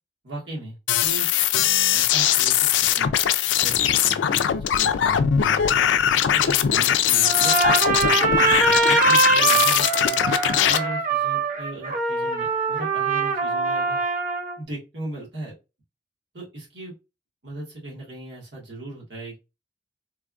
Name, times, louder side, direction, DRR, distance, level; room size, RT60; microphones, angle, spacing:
voice 1, 0.2-3.1 3.6-4.5 4.8-5.7 6.1-10.2 10.6-14.0 14.6-15.5 16.3-16.9 17.4-19.4, right 2 dB, 75° right, -4 dB, 1.4 m, -37 dB
sound 1, 0.9-10.8, left 10 dB, 90° left, 0.3 m, -20 dB
Trumpet, 7.2-14.6, right 4 dB, 45° right, 0.5 m, -22 dB
3.3 x 2.3 x 2.4 m, 0.27 s
head